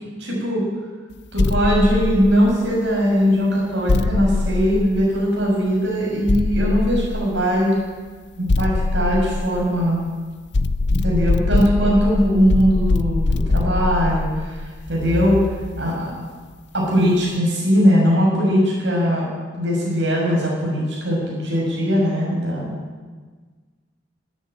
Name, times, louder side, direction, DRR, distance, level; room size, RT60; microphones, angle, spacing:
voice 1, 0.2-0.6 1.3-7.8 8.4-10.0 10.9-15.4 15.8-16.1 16.7-19.3 19.6-22.8, equal, 65° right, -4 dB, 7.2 m, -20 dB
sound 1, 1.4-2.9 3.9-5.5 6.3-7.6 8.5-10.1 10.5-15.8, left 2 dB, 60° left, 0.7 m, -22 dB
22.0 x 12.5 x 9.3 m, 1.4 s
head